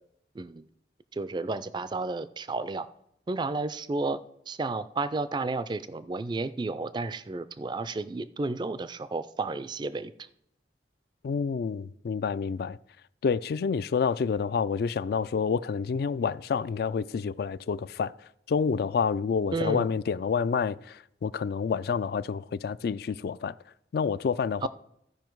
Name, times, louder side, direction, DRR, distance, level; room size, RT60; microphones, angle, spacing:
voice 1, 0.3-0.7 1.1-2.9 3.3-4.2 4.5-10.3 19.5-19.9 24.6-24.7, right 3 dB, 25° right, 0.3 m, -32 dB
voice 2, 11.2-12.8 13.2-18.1 18.5-23.5 23.9-24.7, left 6 dB, 60° left, 0.3 m, -28 dB
14.0 x 5.2 x 4.6 m
head